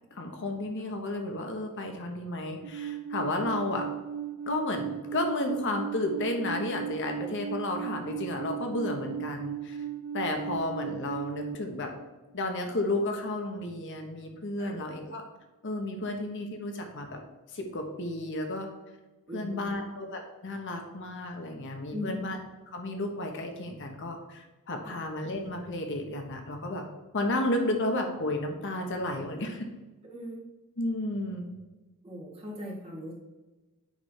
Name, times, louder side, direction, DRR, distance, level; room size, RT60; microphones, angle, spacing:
voice 1, 0.1-3.8 4.5-9.8 10.1-11.9 12.3-15.2 15.6-17.2 17.5-18.7 19.3-22.4 22.7-26.8 27.1-29.7 30.8-31.6, left 2 dB, 55° left, 4 dB, 0.9 m, -32 dB
Alarm, 2.6-11.5, right 9 dB, 75° right, 0.4 m, -37 dB
voice 2, 19.3-19.8 21.9-22.2 24.8-25.0 30.1-30.5 32.0-33.1, left 1 dB, 25° right, -3 dB, 1.7 m, -39 dB
8.3 x 3.2 x 5.5 m, 1.2 s
head